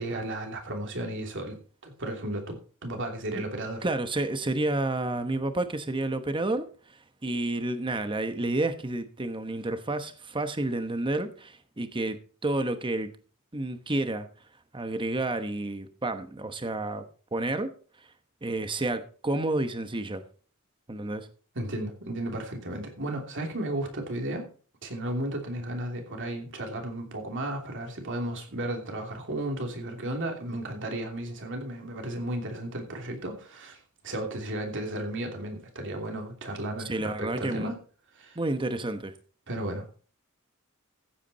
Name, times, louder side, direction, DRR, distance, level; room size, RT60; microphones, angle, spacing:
voice 1, 0.0-3.9 21.5-24.5 24.8-37.8 38.2-38.4 39.5-39.9, right 1 dB, 60° right, 2.9 m, -34 dB
voice 2, 3.8-13.1 13.5-14.3 14.7-17.0 17.3-17.7 18.4-20.2 20.9-21.3 36.8-37.7 38.4-39.1, right 2 dB, 25° right, 1.0 m, -30 dB
14.5 x 8.4 x 4.2 m
head